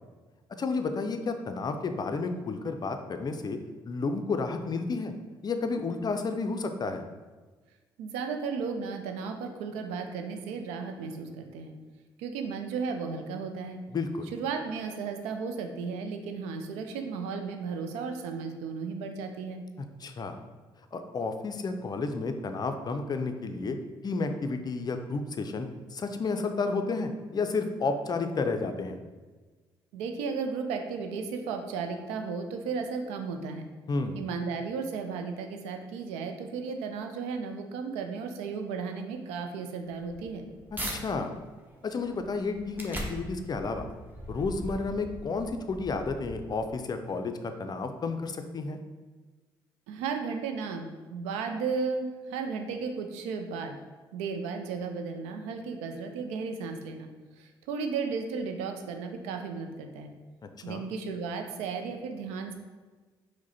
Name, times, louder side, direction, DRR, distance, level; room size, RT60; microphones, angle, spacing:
voice 1, 0.6-3.6 3.9-5.1 5.4-7.0 13.9-14.3 19.8-20.4 20.9-23.8 24.0-29.0 33.9-34.3 40.9-41.3 41.8-43.9 44.3-48.8 60.7-60.8, left 4 dB, 40° left, 7 dB, 0.4 m, -31 dB
voice 2, 8.0-11.7 12.2-13.8 14.3-19.6 29.9-33.6 34.1-40.5 49.9-53.7 54.1-57.1 57.4-60.1 60.6-62.5, right 5 dB, 75° right, 5 dB, 0.4 m, -34 dB
sound 1, 40.0-41.0 41.5-46.8, equal, 15° right, 1.0 m, -41 dB
4.7 x 2.1 x 4.0 m, 1.3 s
hypercardioid pair, 45°, 11 cm